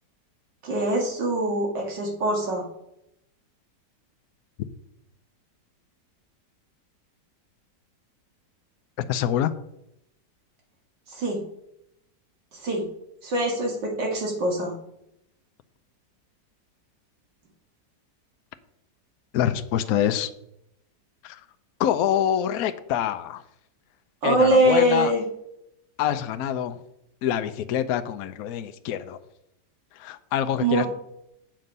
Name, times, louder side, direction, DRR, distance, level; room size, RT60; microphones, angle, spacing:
voice 1, 0.6-2.6 11.1-11.4 12.6-12.9 13.2-14.7 24.2-25.2 30.6-30.9, right 1 dB, 80° right, 0 dB, 2.6 m, -23 dB
voice 2, 9.1-9.5 19.3-20.3 21.2-21.4 21.8-23.4 24.2-25.1 26.0-26.8 27.2-29.2 30.0-30.9, left 10 dB, 70° left, 10 dB, 1.0 m, -25 dB
7.7 x 7.6 x 5.4 m, 0.81 s
omnidirectional pair, 1.9 m